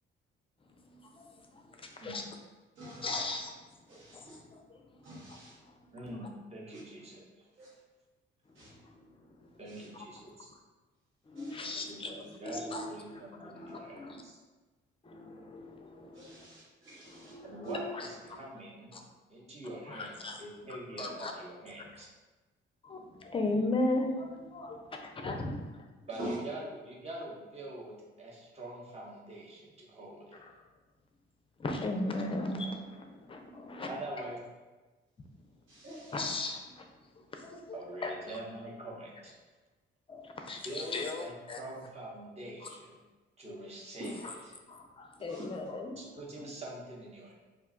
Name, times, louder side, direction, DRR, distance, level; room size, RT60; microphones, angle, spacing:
voice 1, 1.5-2.2 3.0-3.6 4.2-4.8 5.3-5.4 11.3-14.2 15.0-16.4 17.0-18.4 18.9-19.0 19.9-20.4 21.0-21.3 22.8-24.9 25.2-25.5 30.4-30.5 31.6-33.9 36.1-36.8 37.3-37.8 38.0-38.4 40.1-41.6 44.2-44.3 44.7-46.0 46.4-46.5, left 2 dB, 25° left, 3 dB, 0.4 m, -37 dB
voice 2, 2.8-3.1 3.9-4.4 5.0-5.5 7.6-7.7 8.6-8.7 11.4-11.6 16.1-17.3 26.2-26.3 35.7-36.1 44.0-44.1 45.3-45.4, right 1 dB, 75° right, -7 dB, 1.2 m, -44 dB
voice 3, 5.9-7.5 9.6-10.5 11.7-14.3 17.4-19.0 19.3-22.1 26.1-30.4 33.9-34.4 37.7-39.3 40.6-43.0 43.4-44.5 46.0-47.3, right 1 dB, 30° right, -4 dB, 0.9 m, -44 dB
2.4 x 2.2 x 3.7 m, 1.2 s
cardioid pair, 90°, 20 cm